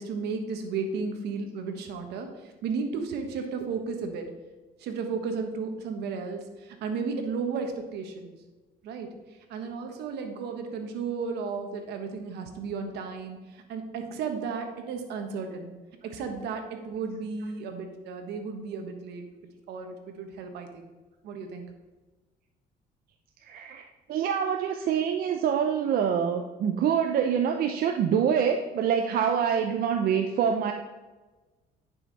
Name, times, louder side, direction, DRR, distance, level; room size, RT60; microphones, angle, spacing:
voice 1, 0.0-4.3 4.8-8.4 8.8-15.7 16.0-19.2 19.7-20.9 21.2-21.6, right 5 dB, 80° right, 5 dB, 1.4 m, -34 dB
voice 2, 23.4-30.7, right 8 dB, 60° right, 5 dB, 0.6 m, -26 dB
10.0 x 5.7 x 4.1 m, 1.2 s
cardioid pair, 110°, 17 cm